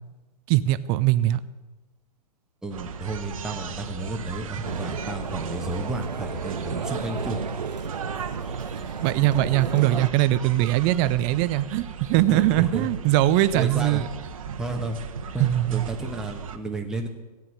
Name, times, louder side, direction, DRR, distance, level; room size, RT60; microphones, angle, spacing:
voice 1, 0.5-1.4 9.0-14.1 15.4-15.9, right 15 dB, 25° right, 16 dB, 0.5 m, -21 dB
voice 2, 2.6-7.4 12.1-12.9 13.5-14.0 14.6-15.0 15.3-17.1, right 2 dB, 5° right, 2 dB, 1.2 m, -32 dB
sound 1, 2.7-16.6, right 6 dB, 55° right, 1.2 m, -37 dB
sound 2, 4.6-10.1, right 5 dB, 80° right, 0.6 m, -33 dB
13.5 x 9.4 x 8.0 m, 1.1 s
figure-of-eight pair, 110°, 21 cm